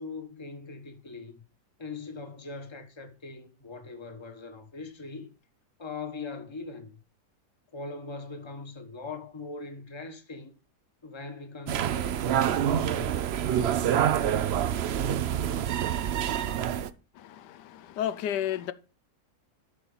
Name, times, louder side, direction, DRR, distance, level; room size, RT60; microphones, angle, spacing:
voice 1, 0.0-1.3 1.8-5.3 5.8-6.9 7.7-10.5 11.0-14.2, left 4 dB, 20° left, 1.1 m, -41 dB
sound 1, 11.7-16.9, right 10 dB, 85° right, 0.5 m, -27 dB
voice 2, 17.1-18.7, left 10 dB, 90° left, 1.3 m, -32 dB
11.5 x 4.5 x 5.4 m
omnidirectional pair, 1.8 m